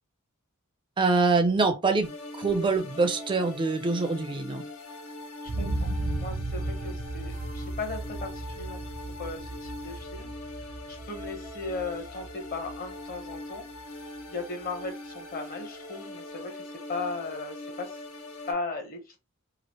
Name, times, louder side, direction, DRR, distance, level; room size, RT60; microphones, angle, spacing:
voice 1, 1.0-2.1 2.4-4.6, right 3 dB, 25° right, 0.4 m, -24 dB
sound 1, 2.0-18.5, left 2 dB, 85° left, 0.9 m, -42 dB
voice 2, 5.4-5.9 6.2-8.8 9.2-13.6 14.3-18.0 18.5-19.2, left 3 dB, 40° left, 0.9 m, -37 dB
sound 2, 5.5-13.3 13.8-13.9, right 1 dB, 80° right, 0.5 m, -35 dB
3.0 x 2.5 x 2.8 m
head